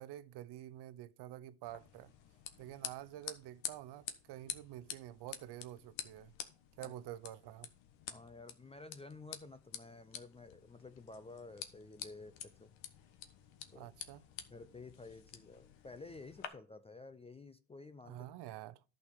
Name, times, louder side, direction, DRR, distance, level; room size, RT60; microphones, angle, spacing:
voice 1, 0.0-2.1 2.6-6.3 6.8-7.7 13.7-14.2 18.0-18.8, right 13 dB, 55° right, 0.7 m, -48 dB
sound 1, 1.6-16.5, left 9 dB, 65° left, 1.4 m, -49 dB
voice 2, 8.1-12.7 13.7-13.9 14.5-18.3, left 3 dB, 15° left, 0.4 m, -52 dB
11.0 x 6.5 x 5.0 m
supercardioid pair, 95°, 49 cm